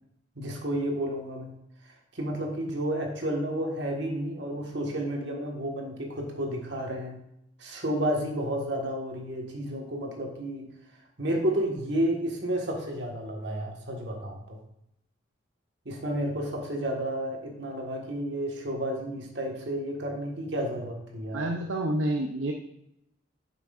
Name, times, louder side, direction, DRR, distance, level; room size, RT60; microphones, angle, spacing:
voice 1, 0.3-1.5 1.8-7.2 7.6-10.7 11.2-14.6 15.8-21.4, right 1 dB, 60° right, 1 dB, 1.5 m, -31 dB
voice 2, 21.3-22.5, right 1 dB, 75° right, 2 dB, 0.6 m, -28 dB
8.9 x 6.2 x 2.5 m, 0.80 s
head